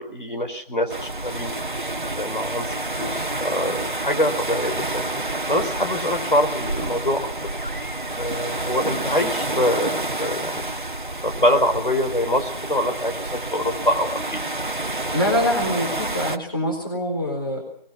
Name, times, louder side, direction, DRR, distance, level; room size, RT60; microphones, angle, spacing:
voice 1, 0.0-1.5 2.0-5.1 5.5-7.5 8.2-10.6 11.2-14.4, left 1 dB, 60° left, 5 dB, 4.5 m, -24 dB
sound 1, 0.9-16.4, right 2 dB, 55° right, 1.3 m, -29 dB
voice 2, 15.1-17.6, equal, 25° left, 1 dB, 4.1 m, -24 dB
24.0 x 21.0 x 6.0 m, 0.63 s
figure-of-eight pair, 175°, 29 cm